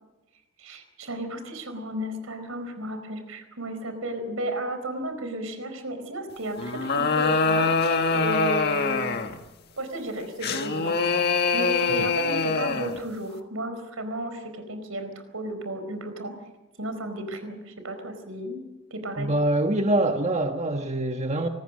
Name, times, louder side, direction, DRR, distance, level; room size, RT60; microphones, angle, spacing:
voice 1, 0.6-9.2 9.8-11.1 11.5-16.3 16.8-18.6 18.9-19.3, right 1 dB, 85° right, 8 dB, 4.5 m, -33 dB
sound 1, 6.6-9.4 10.4-13.0, left 4 dB, 50° left, 1.7 m, -24 dB
voice 2, 19.2-21.5, right 1 dB, 35° right, 5 dB, 1.3 m, -24 dB
26.0 x 19.5 x 6.4 m, 1.1 s
head